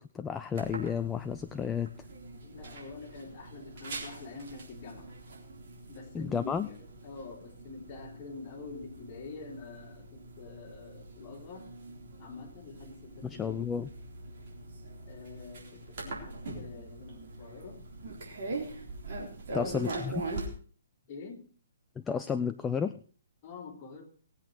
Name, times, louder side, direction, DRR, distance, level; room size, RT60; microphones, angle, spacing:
voice 1, 0.0-1.9 6.1-6.7 13.2-13.9 19.5-20.2 22.0-23.0, left 7 dB, 10° left, 0.5 m, -32 dB
sound 1, 0.5-20.5, right 2 dB, 50° right, 3.8 m, -43 dB
voice 2, 2.4-5.2 5.9-11.8 12.2-13.7 15.0-17.9 19.5-19.9 21.1-21.5 23.4-24.0, left 4 dB, 30° left, 3.4 m, -46 dB
19.0 x 8.2 x 4.6 m
figure-of-eight pair, 125°, 0 cm